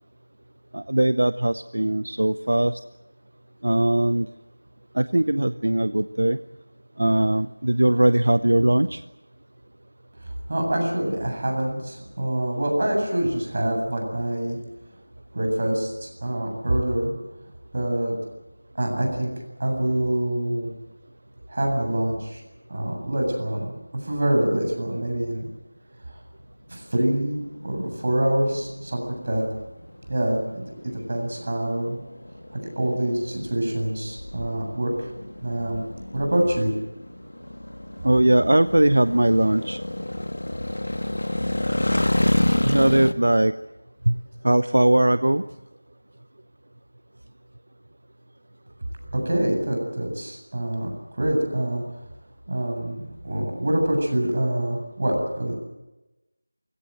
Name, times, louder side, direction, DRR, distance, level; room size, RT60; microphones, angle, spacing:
voice 1, 0.7-2.8 3.6-4.3 4.9-6.4 7.0-9.0 38.0-39.8 42.6-43.5 44.1-44.2 44.4-45.4, right 1 dB, 70° right, 14 dB, 0.8 m, -20 dB
voice 2, 10.5-14.6 15.3-17.1 17.7-18.2 18.8-19.3 19.6-20.7 21.5-22.4 22.7-23.7 24.0-25.5 26.7-29.5 30.1-32.0 32.5-35.1 35.4-35.8 36.1-36.7 49.2-51.8 52.5-55.5, right 1 dB, 40° right, 2 dB, 8.0 m, -25 dB
sound 1, 27.0-43.1, left 1 dB, 90° left, 1.7 m, -29 dB
29.5 x 17.0 x 7.9 m, 1.0 s
figure-of-eight pair, 175°, 0 cm